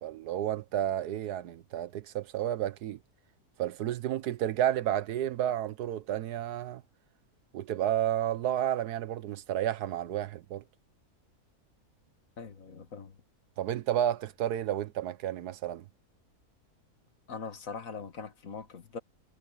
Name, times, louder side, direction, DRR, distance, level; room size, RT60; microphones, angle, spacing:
voice 1, 0.0-3.0 3.6-6.8 7.5-10.6 13.6-15.9, right 11 dB, 85° right, 1.4 m, -31 dB
voice 2, 12.4-13.1 17.3-19.0, left 5 dB, 60° left, 1.9 m, -41 dB
omnidirectional pair, 1.6 m